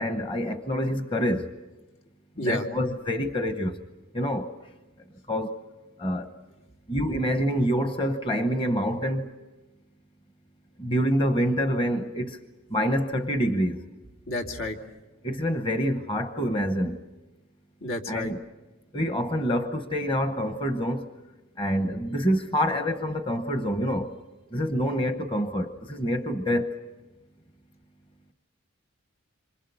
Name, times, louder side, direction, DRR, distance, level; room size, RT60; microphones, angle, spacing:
voice 1, 0.0-1.5 2.4-3.8 4.1-4.5 5.3-5.6 6.0-6.3 6.9-9.3 10.8-12.4 12.7-13.8 15.2-17.0 18.1-18.4 18.9-21.1 21.6-24.1 24.5-26.8, equal, 25° left, 1.0 m, -26 dB
voice 2, 14.3-14.8 17.8-18.3, left 1 dB, 85° left, 2.8 m, -30 dB
27.0 x 26.0 x 6.8 m
head